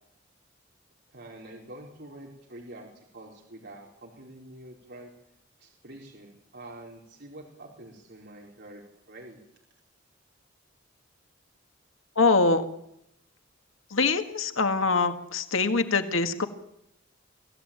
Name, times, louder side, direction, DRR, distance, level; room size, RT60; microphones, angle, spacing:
voice 1, 1.1-5.1 5.6-8.8 9.1-9.4, right 1 dB, 55° right, -1 dB, 4.6 m, -46 dB
voice 2, 12.2-12.6 13.9-16.5, left 3 dB, 90° left, 8 dB, 1.8 m, -24 dB
25.5 x 16.0 x 9.1 m, 0.80 s
head